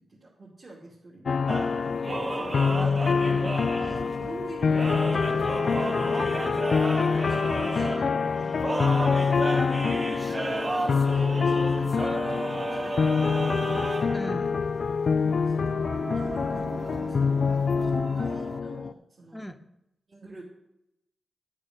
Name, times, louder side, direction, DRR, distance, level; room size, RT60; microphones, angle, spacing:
voice 1, 0.1-2.6 3.9-10.0 10.6-13.8 15.1-15.8 16.1-19.5 20.1-20.4, right 2 dB, 45° right, -6 dB, 2.7 m, -46 dB
sound 1, 1.3-18.9, left 5 dB, 60° left, 0.3 m, -26 dB
sound 2, 1.5-18.6, right 2 dB, 30° right, 0.4 m, -34 dB
voice 2, 2.6-4.0 14.1-14.6 19.3-19.6, equal, 10° left, 8 dB, 0.8 m, -40 dB
11.5 x 6.6 x 6.1 m, 0.85 s
cardioid pair, 80°, 0 cm